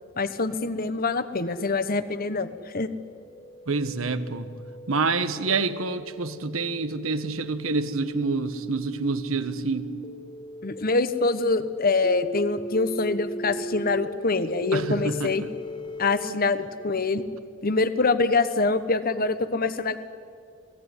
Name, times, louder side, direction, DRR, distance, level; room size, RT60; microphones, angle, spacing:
voice 1, 0.2-2.9 10.6-15.4 16.0-17.2 17.6-20.0, left 3 dB, 45° left, 12 dB, 1.3 m, -25 dB
sound 1, 2.9-16.0, right 1 dB, 20° left, 1.7 m, -38 dB
voice 2, 3.7-4.5 4.9-9.9 14.7-15.3 16.3-16.4, right 3 dB, 90° right, 11 dB, 1.4 m, -27 dB
28.5 x 19.5 x 9.9 m, 2.3 s
head